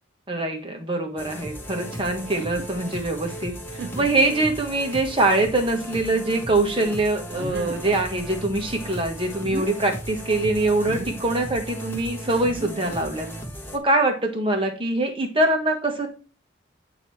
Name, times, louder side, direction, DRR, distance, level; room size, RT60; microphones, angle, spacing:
voice 1, 0.3-3.5 3.9-13.3 13.7-16.1, right 2 dB, 25° right, 3 dB, 1.3 m, -23 dB
sound 1, 1.2-13.8, equal, 10° left, 1.0 m, -36 dB
sound 2, 2.2-2.7 3.2-3.3 3.8-4.3 5.0-5.1 7.4-7.9 9.3-9.7 10.8-11.3 12.2-13.1, right 3 dB, 60° right, 0.5 m, -36 dB
8.9 x 3.0 x 4.3 m, 0.36 s
head